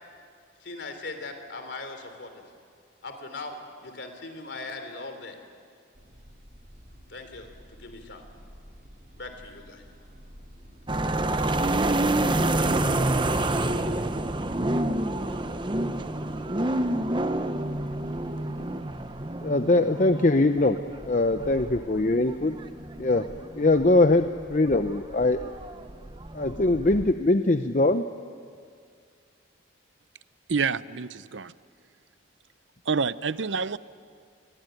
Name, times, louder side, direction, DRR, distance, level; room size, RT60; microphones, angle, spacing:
voice 1, 0.6-2.4 3.0-5.4 7.1-8.2 9.2-9.8, left 3 dB, 65° left, 7 dB, 3.4 m, -40 dB
sound 1, 5.9-19.3, equal, 45° right, 4.0 m, -50 dB
sound 2, 10.9-27.1, right 1 dB, 25° right, 0.9 m, -28 dB
voice 2, 19.4-20.8 21.1-22.6 23.0-23.3 23.6-25.5 26.3-28.0, left 2 dB, 40° left, 9 dB, 0.7 m, -22 dB
voice 3, 30.5-31.5 32.9-33.8, right 5 dB, 70° right, 16 dB, 0.7 m, -27 dB
28.5 x 21.5 x 9.2 m, 2.2 s
head